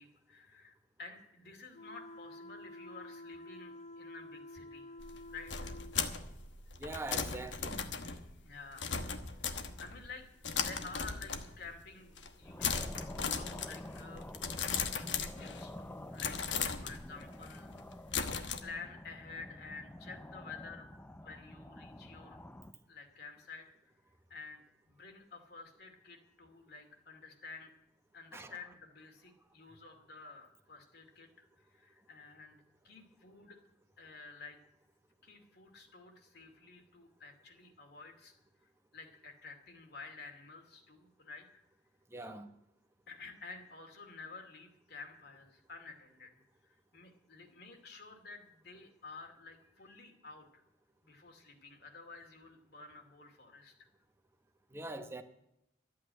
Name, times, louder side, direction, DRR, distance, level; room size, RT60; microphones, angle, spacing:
voice 1, 0.0-5.0 5.3-5.7 8.0-9.0 9.4-10.3 10.5-20.9 21.2-22.4 22.9-23.7 24.3-27.7 28.1-33.6 34.0-34.6 35.2-38.3 38.6-41.5 42.2-42.4 43.1-50.6 51.0-53.9, left 4 dB, 60° left, 2.5 m, -51 dB
sound 1, 1.7-6.0, left 1 dB, 40° left, 0.7 m, -50 dB
sound 2, 5.0-10.1 10.4-11.8 12.1-12.3 12.6-15.8 16.2-18.6, left 6 dB, 85° left, 1.2 m, -38 dB
voice 2, 6.8-7.8 28.3-28.6 42.1-42.5 54.7-55.2, right 2 dB, 15° right, 0.9 m, -43 dB
sound 3, 12.4-22.7, left 1 dB, 10° left, 0.6 m, -48 dB
12.5 x 8.6 x 8.8 m
head